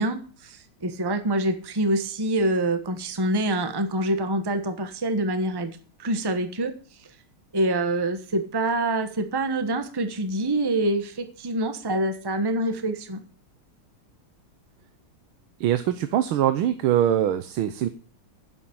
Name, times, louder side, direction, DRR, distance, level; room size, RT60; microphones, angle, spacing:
voice 1, 0.0-5.7 6.0-6.7 7.5-13.2, right 1 dB, 15° right, 8 dB, 1.0 m, -26 dB
voice 2, 15.6-17.9, right 11 dB, 80° right, 11 dB, 1.6 m, -23 dB
10.5 x 7.7 x 8.7 m, 0.41 s
omnidirectional pair, 2.3 m